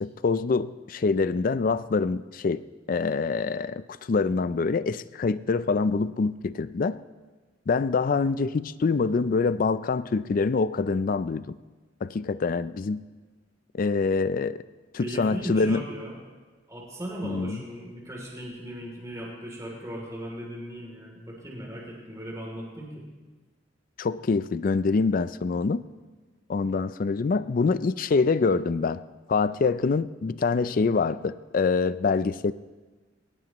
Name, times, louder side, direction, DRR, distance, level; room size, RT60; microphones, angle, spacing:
voice 1, 0.0-7.0 7.7-11.6 12.0-13.0 13.7-14.6 14.9-15.8 17.2-17.6 24.0-25.8 26.5-29.0 29.3-32.5, left 4 dB, 50° left, 15 dB, 0.4 m, -25 dB
voice 2, 15.0-16.2 16.7-23.0, right 1 dB, 20° right, -3 dB, 3.0 m, -37 dB
21.0 x 18.0 x 3.1 m, 1.3 s
head